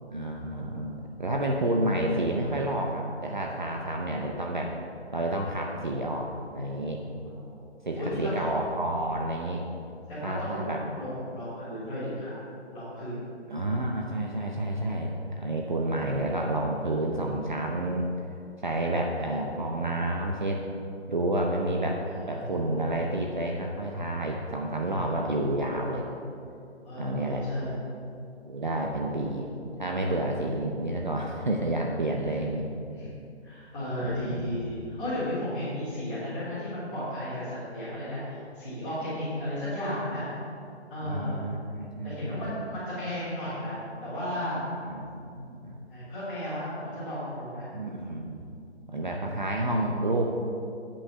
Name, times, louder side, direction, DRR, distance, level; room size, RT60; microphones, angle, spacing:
voice 1, 0.1-4.7 5.1-7.0 7.8-9.6 10.2-10.8 13.5-18.1 18.6-20.6 21.1-22.0 22.3-26.0 27.0-27.4 28.5-29.5 29.8-32.6 34.0-34.7 41.0-42.5 44.9-45.8 47.7-48.4 48.9-50.2, right 1 dB, 45° right, 0 dB, 0.7 m, -30 dB
voice 2, 7.2-7.6 8.0-8.6 10.1-12.3 12.7-13.2 22.0-22.9 24.9-25.3 26.8-27.7 32.9-33.1 33.4-40.3 40.9-41.4 42.0-44.6 45.9-47.7, left 1 dB, 10° left, -14 dB, 2.0 m, -34 dB
8.5 x 5.7 x 6.8 m, 2.5 s
hypercardioid pair, 175°, 34 cm